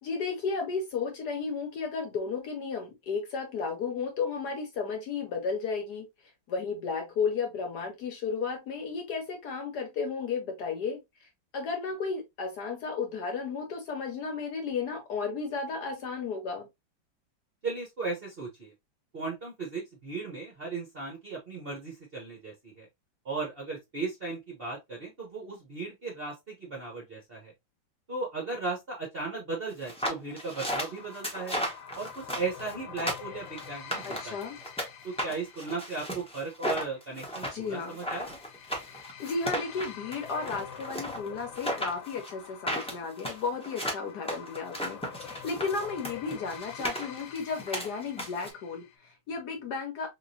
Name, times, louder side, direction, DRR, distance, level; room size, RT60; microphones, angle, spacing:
voice 1, 0.0-6.1 6.5-11.3 11.5-16.7 34.0-34.6 37.5-38.0 38.9-50.1, left 5 dB, 65° left, 1.1 m, -33 dB
voice 2, 17.6-18.7 19.1-22.9 23.2-27.5 28.1-31.6 31.9-34.4 35.0-38.3, right 3 dB, 45° right, 0.7 m, -36 dB
sound 1, 29.8-34.9 35.2-48.5, equal, 10° left, 0.3 m, -35 dB
sound 2, 30.3-48.9, left 8 dB, 80° left, 1.4 m, -47 dB
3.6 x 2.9 x 2.6 m
omnidirectional pair, 2.2 m